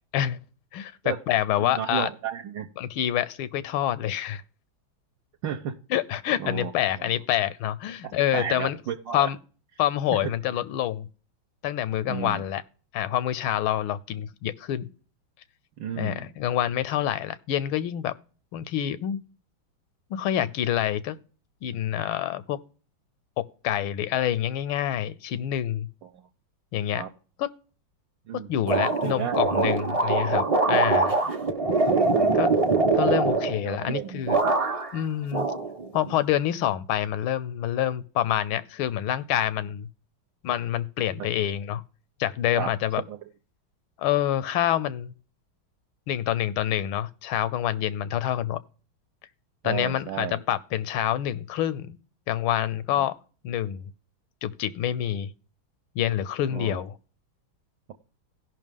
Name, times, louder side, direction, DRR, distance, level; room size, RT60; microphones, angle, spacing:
voice 1, 0.7-2.1 2.8-4.4 5.9-8.8 9.1-9.4 9.8-11.1 11.6-12.6 12.9-14.9 16.0-18.1 18.5-19.2 20.1-21.2 21.6-22.6 23.4-25.9 26.7-27.0 27.4-27.5 28.3-31.1 32.4-32.5 32.9-34.4 34.9-35.5 35.9-39.9 40.4-41.8 42.2-43.0 44.0-45.1 46.1-48.6 49.6-52.0 52.3-53.1 53.4-53.9 54.4-55.3 55.9-56.9, left 11 dB, 90° left, 1.5 m, -27 dB
voice 2, 1.6-2.7 5.4-5.8 6.4-7.1 8.0-9.3 12.0-12.4 15.8-16.3 26.1-26.2 26.9-27.1 28.3-28.5 29.0-29.4 30.0-30.1 31.5-31.6 32.1-32.6 33.0-33.2 33.6-34.2 41.2-41.3 42.6-42.7 43.1-43.2 49.6-50.4 52.9-53.1 56.5-56.8, right 9 dB, 70° right, 1.4 m, -33 dB
sound 1, 28.7-33.9 34.3-35.0 35.3-36.2, right 3 dB, 40° right, 0.5 m, -23 dB
17.0 x 5.7 x 3.6 m
omnidirectional pair, 2.2 m